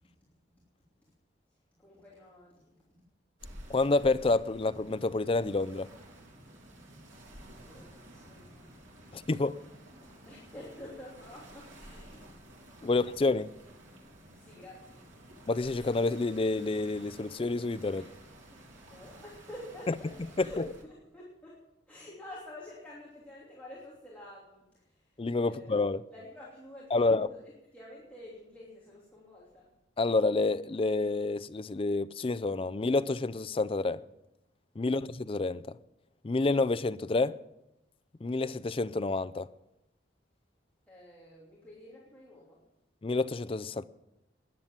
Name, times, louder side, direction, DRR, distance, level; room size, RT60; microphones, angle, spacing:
voice 1, 1.5-2.7 7.6-8.7 10.2-12.3 12.8-13.3 13.9-14.0 14.3-15.0 17.9-18.1 18.5-25.8 26.1-29.7 34.8-35.0 40.9-42.6, left 1 dB, 10° left, 3.0 m, -49 dB
sound 1, 3.4-20.8, right 1 dB, 85° right, 3.5 m, -52 dB
voice 2, 3.7-5.9 9.1-9.6 12.8-13.5 15.5-18.0 20.4-20.5 25.2-26.0 26.9-27.3 30.0-34.0 34.8-35.7 36.2-37.4 38.2-39.5 43.0-43.8, left 3 dB, 30° left, 0.4 m, -28 dB
13.5 x 10.5 x 7.4 m
head